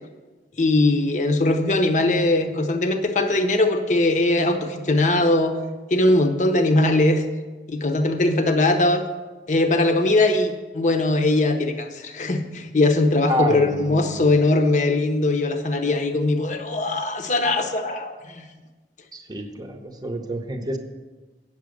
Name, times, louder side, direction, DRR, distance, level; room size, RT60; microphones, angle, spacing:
voice 1, 0.6-5.5 5.9-7.2 7.7-9.0 9.5-18.5, left 2 dB, 45° left, 6 dB, 0.8 m, -20 dB
voice 2, 13.3-14.1 19.1-20.8, equal, 25° right, 6 dB, 0.8 m, -28 dB
8.8 x 7.2 x 6.4 m, 1.3 s
head